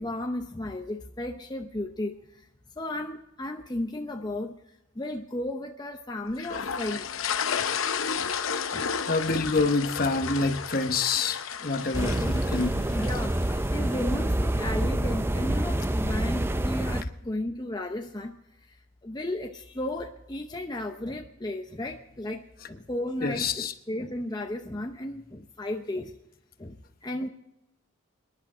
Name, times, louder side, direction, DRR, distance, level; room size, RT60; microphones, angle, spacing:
voice 1, 0.0-2.5 2.8-4.5 4.9-7.1 7.6-7.7 8.2-8.3 8.7-8.9 9.3-9.4 12.2-12.3 12.9-13.4 13.7-26.2 26.6-27.3, left 1 dB, 20° left, 3 dB, 0.7 m, -34 dB
sound 1, 6.4-13.7, left 7 dB, 75° left, 0.8 m, -32 dB
voice 2, 9.1-13.0 23.2-23.7, left 3 dB, 45° left, 8 dB, 1.0 m, -27 dB
sound 2, 11.9-17.0, right 1 dB, 10° right, 0.4 m, -27 dB
25.5 x 11.0 x 3.7 m, 0.86 s
head